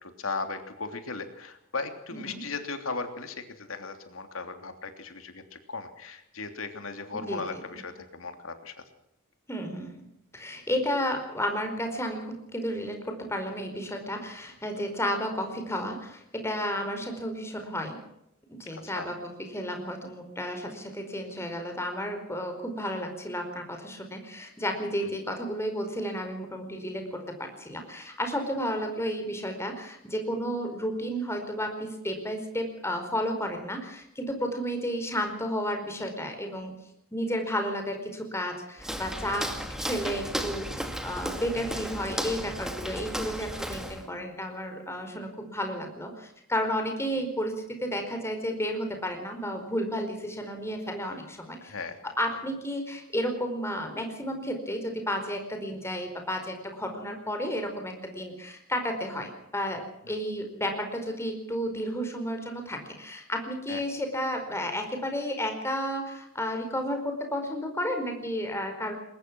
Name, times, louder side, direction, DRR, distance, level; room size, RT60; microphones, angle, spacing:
voice 1, 0.0-8.8 18.7-19.1 36.0-36.1 51.6-52.1 60.0-60.2 63.7-63.8, left 4 dB, 70° left, 7 dB, 3.1 m, -37 dB
voice 2, 2.1-2.4 7.1-7.6 9.5-10.0 10.3-18.0 18.5-36.7 37.1-39.5 39.8-51.7 52.2-68.9, equal, 15° left, 5 dB, 4.8 m, -32 dB
Walk footsteps, 38.8-44.1, equal, 5° right, 2.3 m, -34 dB
21.5 x 19.5 x 6.2 m, 0.81 s
head